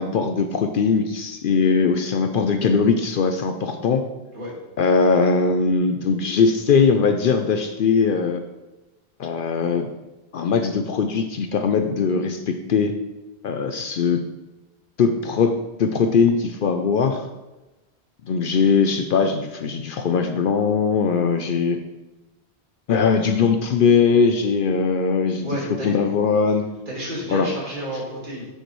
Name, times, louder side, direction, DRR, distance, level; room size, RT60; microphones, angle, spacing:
voice 1, 0.0-4.1 4.8-8.4 9.2-9.9 10.3-12.9 13.4-14.2 15.0-17.3 18.2-21.8 22.9-25.5 25.8-26.7 27.3-27.5, left 5 dB, 65° left, 7 dB, 0.7 m, -20 dB
voice 2, 25.4-25.9 26.9-28.5, equal, 55° right, -4 dB, 2.2 m, -30 dB
7.7 x 6.5 x 3.1 m, 1.0 s
omnidirectional pair, 1.1 m